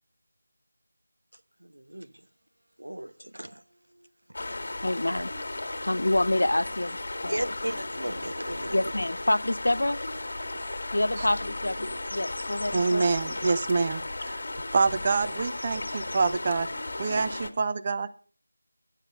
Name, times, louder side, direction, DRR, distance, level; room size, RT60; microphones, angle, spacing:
voice 1, 1.6-2.1 2.8-3.6 3.9-4.1 7.3-8.9 17.1-17.2, right 1 dB, 85° right, 11 dB, 0.9 m, -36 dB
sound 1, 4.3-17.5, left 2 dB, 50° left, 1.7 m, -35 dB
voice 2, 4.8-5.3 5.8-7.5 8.7-10.0 10.9-13.0, left 1 dB, 70° left, 16 dB, 0.6 m, -27 dB
voice 3, 12.7-14.4 14.7-18.1, right 4 dB, 25° right, 11 dB, 0.5 m, -26 dB
9.8 x 7.4 x 6.5 m, 0.42 s
figure-of-eight pair, 170°, 0 cm